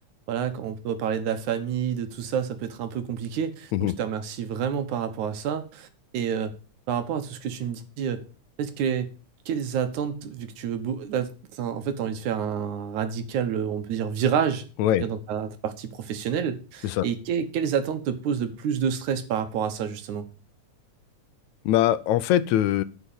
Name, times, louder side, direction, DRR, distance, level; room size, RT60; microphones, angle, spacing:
voice 1, 0.3-5.9 6.1-6.5 6.9-8.2 8.6-9.1 9.5-14.6 15.0-20.3, right 8 dB, 80° right, 9 dB, 2.6 m, -28 dB
voice 2, 21.7-22.8, left 12 dB, 80° left, 15 dB, 1.9 m, -22 dB
10.0 x 6.2 x 7.3 m, 0.35 s
omnidirectional pair, 3.4 m